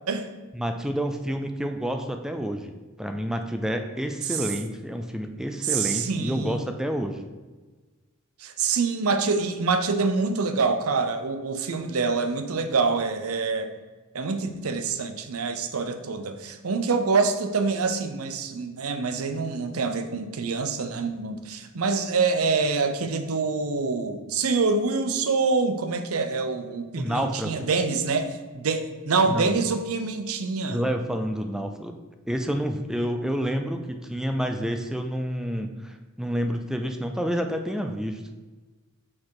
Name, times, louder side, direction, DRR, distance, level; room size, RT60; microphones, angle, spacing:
voice 1, 0.5-7.2 27.0-27.7 29.3-29.6 30.7-31.9 32.3-38.2, equal, 5° right, 5 dB, 0.4 m, -29 dB
voice 2, 5.6-6.6 8.4-13.7 14.1-30.8, right 4 dB, 90° right, 9 dB, 0.6 m, -26 dB
5.9 x 4.6 x 4.7 m, 1.3 s
head